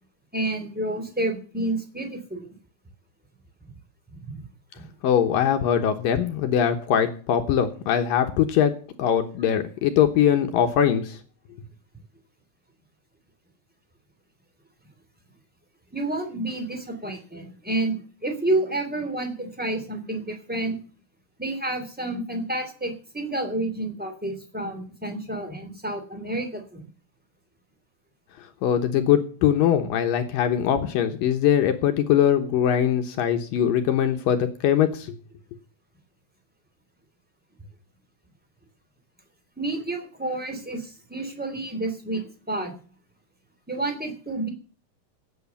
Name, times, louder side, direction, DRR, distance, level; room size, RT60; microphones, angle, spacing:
voice 1, 0.3-2.5 4.3-4.4 4.8-4.9 15.9-20.8 21.4-26.9 39.6-42.7 43.7-44.5, right 2 dB, 5° right, 4 dB, 2.5 m, -29 dB
voice 2, 5.0-11.2 28.6-35.1, left 9 dB, 75° left, 6 dB, 2.7 m, -22 dB
17.0 x 8.5 x 7.1 m, 0.41 s
omnidirectional pair, 4.2 m